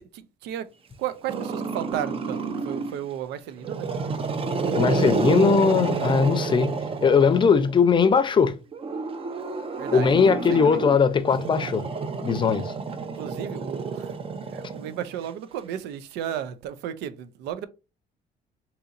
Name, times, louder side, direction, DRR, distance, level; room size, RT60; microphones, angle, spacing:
voice 1, 0.1-0.7 1.0-3.9 9.8-10.8 13.1-14.1 14.5-17.7, right 10 dB, 85° right, 0.5 m, -34 dB
Growling, 1.3-3.0 3.6-7.7 8.7-15.2, right 4 dB, 35° right, 0.5 m, -29 dB
voice 2, 4.7-6.7 7.0-8.5 9.9-11.8 12.2-12.7, left 6 dB, 30° left, 0.5 m, -20 dB
4.0 x 2.9 x 2.5 m
cardioid pair, 110°, 17 cm